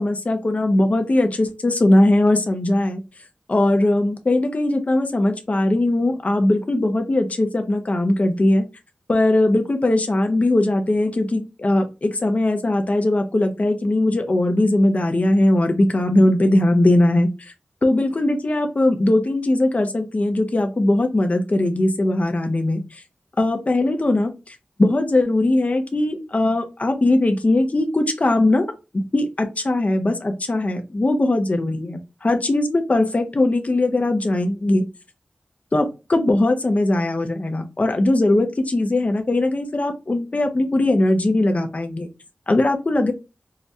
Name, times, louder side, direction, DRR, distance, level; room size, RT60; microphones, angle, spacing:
voice 1, 0.0-3.0 3.5-8.7 9.1-17.5 17.8-23.0 23.4-28.7 28.9-34.8 35.7-42.1 42.5-43.1, left 1 dB, 40° left, 6 dB, 0.5 m, -20 dB
4.8 x 2.1 x 2.6 m, 0.28 s
wide cardioid pair, 60°, 4 cm